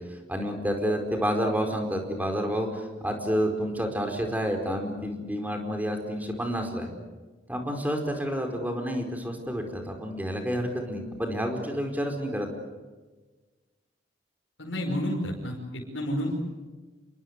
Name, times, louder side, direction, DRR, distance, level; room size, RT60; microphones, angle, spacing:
voice 1, 0.3-6.9 7.5-12.5, equal, 10° right, 4 dB, 4.8 m, -29 dB
voice 2, 14.6-16.4, equal, 80° left, -2 dB, 5.4 m, -30 dB
28.5 x 23.0 x 8.2 m, 1.3 s
head